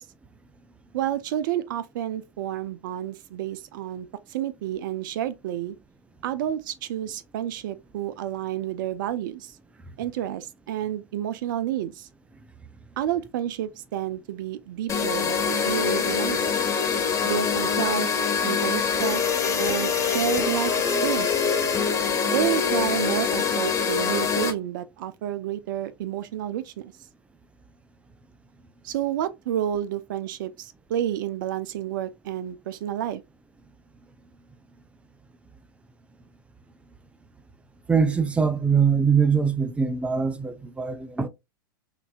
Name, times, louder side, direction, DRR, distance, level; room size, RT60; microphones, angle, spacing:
voice 1, 0.9-5.7 6.2-9.6 10.0-12.1 13.0-15.4 15.6-16.5 17.2-18.1 18.4-19.2 19.6-20.7 21.0-21.6 22.3-26.9 28.8-33.2, right 11 dB, 60° right, 0.5 m, -30 dB
sound 1, 14.9-24.5, left 6 dB, 25° left, 1.4 m, -24 dB
voice 2, 37.9-41.3, right 6 dB, 10° right, 0.5 m, -22 dB
5.9 x 2.7 x 2.3 m
hypercardioid pair, 100°, 12 cm